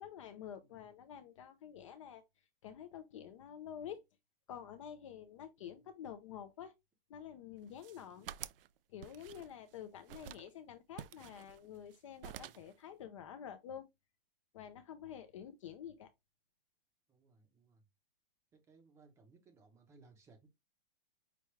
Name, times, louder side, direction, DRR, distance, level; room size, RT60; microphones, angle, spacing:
voice 1, 0.0-2.2 2.6-4.0 4.5-6.7 7.1-8.3 8.9-13.9 14.5-16.1, left 9 dB, 35° left, 0.5 m, -49 dB
voice 2, 0.5-0.9 5.7-5.8 8.1-8.2 12.4-12.6 17.1-17.8 18.5-20.5, right 4 dB, 10° right, 0.7 m, -64 dB
sound 1, 7.6-8.7 9.0-9.7 10.1-10.5 11.0-12.0 12.2-12.7, right 10 dB, 70° right, 0.5 m, -49 dB
6.0 x 2.3 x 3.1 m
hypercardioid pair, 165°, 29 cm